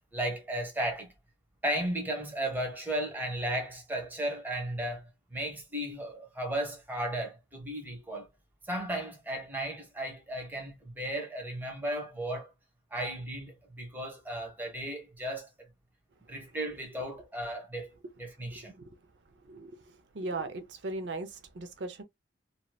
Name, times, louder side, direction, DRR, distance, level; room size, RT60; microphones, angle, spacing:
voice 1, 0.1-1.1 1.6-8.3 8.7-12.5 12.9-15.5 16.3-17.9 18.2-18.7, right 1 dB, 10° right, 1.0 m, -35 dB
voice 2, 18.5-19.0 19.4-22.0, right 2 dB, 70° right, 0.5 m, -39 dB
3.0 x 2.8 x 2.3 m
head